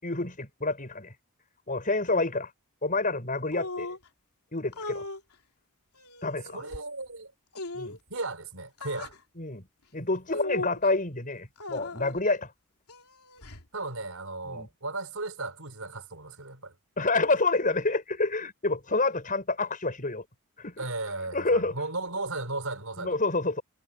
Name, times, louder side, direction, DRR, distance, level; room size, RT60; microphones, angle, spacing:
voice 1, 0.0-1.1 1.7-2.5 2.8-3.9 4.5-5.0 6.2-6.6 7.7-8.0 9.4-9.7 9.9-12.5 14.4-14.7 17.0-20.2 20.6-20.8 21.3-21.7 23.0-23.6, left 3 dB, 35° left, 6.4 m, -28 dB
sound 1, 3.5-4.1 4.7-5.2 5.9-6.8 7.5-8.0 8.8-9.2 10.3-10.9 11.6-12.2 12.9-13.7, left 2 dB, 85° left, 3.1 m, -38 dB
voice 2, 6.5-7.3 8.1-9.1 13.7-16.8 20.8-23.2, right 2 dB, 65° right, 5.5 m, -35 dB
head